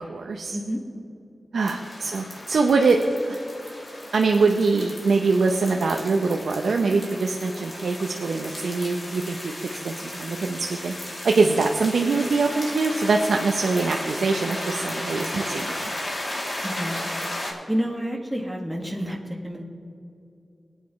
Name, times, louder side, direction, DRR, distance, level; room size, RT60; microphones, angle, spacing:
voice 1, 0.1-0.5 1.5-3.0 3.3-3.4 4.1-9.5 9.8-15.9, right 4 dB, 85° right, 2 dB, 0.6 m, -23 dB
sound 1, 1.6-17.5, left 1 dB, 45° left, 2.8 m, -35 dB
voice 2, 1.7-2.1 15.2-15.3 16.6-17.1 17.7-19.6, equal, 5° right, -1 dB, 1.8 m, -30 dB
20.0 x 9.1 x 3.1 m, 2.7 s
cardioid pair, 60°, 0 cm